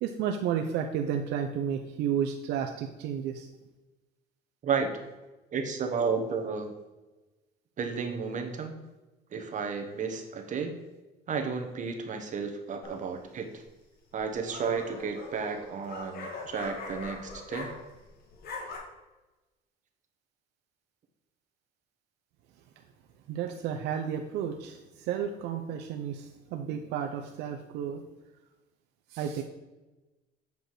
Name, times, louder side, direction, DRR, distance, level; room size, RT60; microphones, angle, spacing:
voice 1, 0.0-3.5 23.3-24.8 25.1-28.0 29.1-29.4, right 8 dB, 85° right, 4 dB, 0.6 m, -32 dB
voice 2, 5.5-6.7 7.8-8.7 9.3-10.7 11.3-13.6 14.1-17.7, right 5 dB, 50° right, 5 dB, 1.3 m, -32 dB
sound 1, 12.8-13.3 14.1-18.1 18.3-18.8, left 3 dB, 65° left, 1.8 m, -42 dB
7.8 x 5.0 x 4.8 m, 1.1 s
cardioid pair, 110°, 17 cm